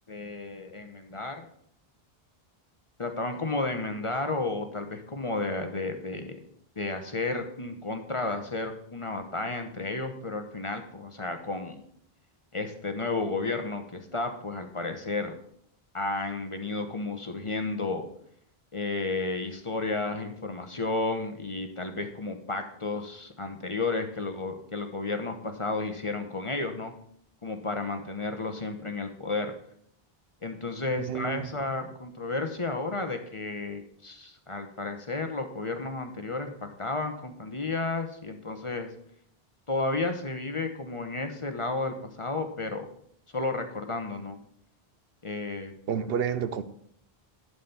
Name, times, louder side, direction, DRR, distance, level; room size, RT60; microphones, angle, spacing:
voice 1, 0.1-1.5 3.0-6.4 6.8-11.8 12.5-15.4 15.9-18.1 18.7-26.9 27.4-29.5 30.4-38.9 39.7-42.9 43.3-44.4 45.2-45.8, left 3 dB, 30° left, 6 dB, 0.9 m, -32 dB
voice 2, 31.1-31.5 45.9-46.6, right 8 dB, 75° right, 13 dB, 0.8 m, -29 dB
11.5 x 4.3 x 6.9 m, 0.67 s
omnidirectional pair, 1.0 m